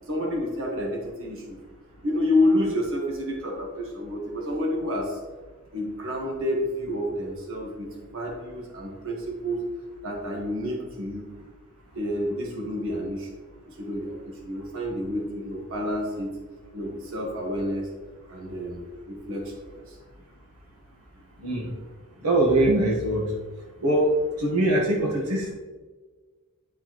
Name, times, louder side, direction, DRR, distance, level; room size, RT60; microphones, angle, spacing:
voice 1, 0.0-1.6 2.0-5.2 5.7-7.9 8.1-9.6 10.0-11.3 11.9-13.3 13.7-16.3 16.7-17.9 18.3-20.0, left 1 dB, 65° right, -1 dB, 1.4 m, -29 dB
voice 2, 22.2-23.3 23.8-25.5, right 1 dB, 85° right, -2 dB, 1.3 m, -22 dB
9.7 x 4.5 x 3.0 m, 1.4 s
head